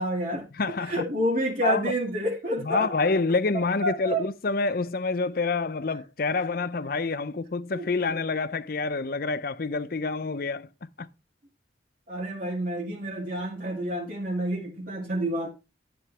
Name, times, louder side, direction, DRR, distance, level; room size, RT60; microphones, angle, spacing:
voice 1, 0.0-0.4 0.8-2.9 3.5-4.3 7.7-8.1 12.1-15.5, right 1 dB, 45° right, 2.2 m, -29 dB
voice 2, 0.5-1.0 1.6-1.9 2.6-10.7 11.0-11.1, left 3 dB, 50° left, 0.6 m, -27 dB
11.0 x 8.0 x 3.3 m
head